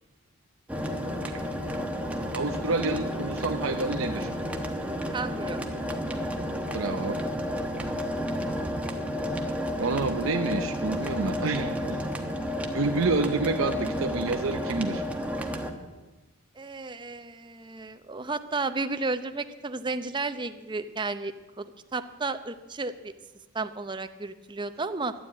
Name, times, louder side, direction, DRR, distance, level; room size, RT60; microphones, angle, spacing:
sound 1, 0.7-15.7, equal, 5° right, 1.1 m, -31 dB
voice 1, 2.3-4.3 6.7-7.2 9.8-12.0 12.7-15.0, right 3 dB, 80° right, 5 dB, 0.7 m, -28 dB
voice 2, 5.1-5.6 16.6-22.9 23.5-25.1, right 3 dB, 25° right, 10 dB, 0.7 m, -33 dB
12.5 x 10.0 x 8.6 m, 1.2 s
head